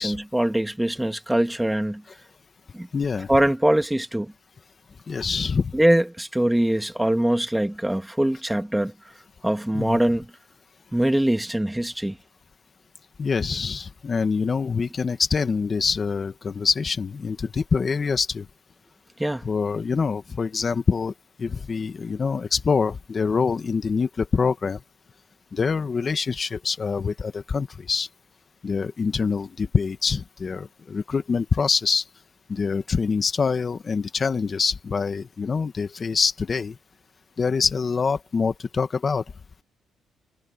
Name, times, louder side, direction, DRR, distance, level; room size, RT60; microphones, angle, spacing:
voice 1, 0.0-2.0 2.7-2.9 3.3-4.3 5.7-8.9 9.4-10.3 10.9-12.2 19.2-19.4, right 1 dB, 5° right, 1.9 m, -22 dB
voice 2, 2.9-3.3 5.1-5.8 9.7-10.0 13.2-18.5 19.4-21.1 21.4-24.8 25.5-28.1 28.6-32.0 32.5-36.8 37.4-39.2, left 5 dB, 40° left, 1.8 m, -25 dB
cardioid pair, 90°, 0 cm